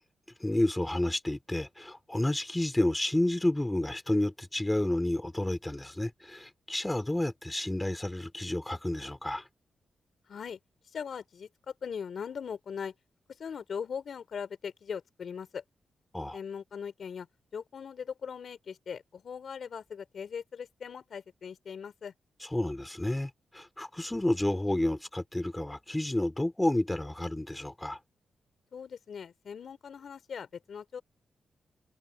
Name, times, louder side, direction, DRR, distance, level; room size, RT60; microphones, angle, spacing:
voice 1, 0.4-9.4 16.1-16.4 22.5-28.0, left 1 dB, 10° left, 3.0 m, -30 dB
voice 2, 10.3-10.6 10.9-12.9 13.3-15.6 16.3-17.3 17.5-22.1 28.7-31.0, left 7 dB, 65° left, 3.8 m, -40 dB
open air
cardioid pair, 80°, 0 cm